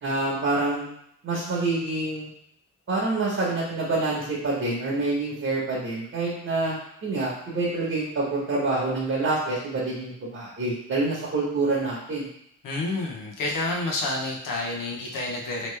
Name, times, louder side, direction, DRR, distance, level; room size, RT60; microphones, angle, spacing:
voice 1, 0.0-0.9 1.2-2.3 2.9-6.7 7.0-12.3, right 2 dB, 45° right, -5 dB, 1.1 m, -27 dB
voice 2, 12.6-15.7, left 2 dB, 85° left, 0 dB, 0.9 m, -29 dB
3.0 x 3.0 x 3.2 m, 0.72 s
cardioid pair, 115°, 32 cm